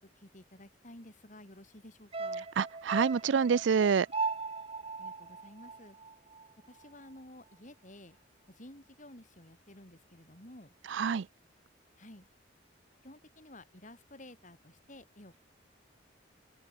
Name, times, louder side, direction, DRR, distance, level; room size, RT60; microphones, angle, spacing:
voice 1, 0.0-2.5 5.0-6.0 6.7-8.2 8.5-10.7 12.0-12.3 13.0-15.4, left 1 dB, 45° left, 6.1 m, -53 dB
sound 1, 2.1-6.5 6.8-6.9, right 4 dB, 30° right, 1.8 m, -38 dB
voice 2, 2.6-4.1 10.9-11.2, right 6 dB, 75° right, 0.4 m, -27 dB
head